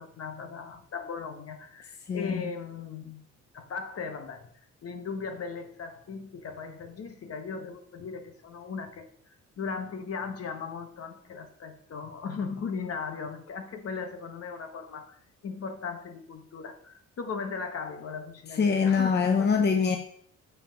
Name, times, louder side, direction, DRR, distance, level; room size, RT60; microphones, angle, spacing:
voice 1, 0.0-3.3 3.5-4.5 4.8-9.1 9.6-19.5, left 5 dB, 50° left, 1.3 m, -37 dB
voice 2, 2.0-2.4 18.5-20.0, left 6 dB, 35° left, 0.8 m, -24 dB
7.2 x 5.8 x 5.7 m
cardioid pair, 90°, 30 cm